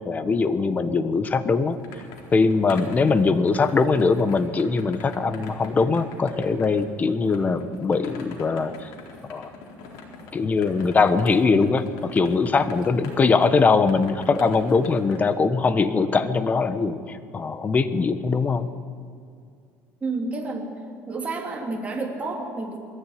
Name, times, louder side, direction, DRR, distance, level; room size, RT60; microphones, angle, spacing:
voice 1, 0.0-1.8 2.3-8.9 9.3-9.5 10.3-18.7, left 4 dB, 25° left, 11 dB, 1.3 m, -21 dB
sound 1, 1.3-15.3, left 3 dB, 75° left, 4.1 m, -43 dB
voice 2, 20.0-20.7 21.1-22.8, right 3 dB, 20° right, 0 dB, 3.3 m, -30 dB
21.5 x 14.0 x 9.4 m, 2.3 s
cardioid pair, 120°, 6 cm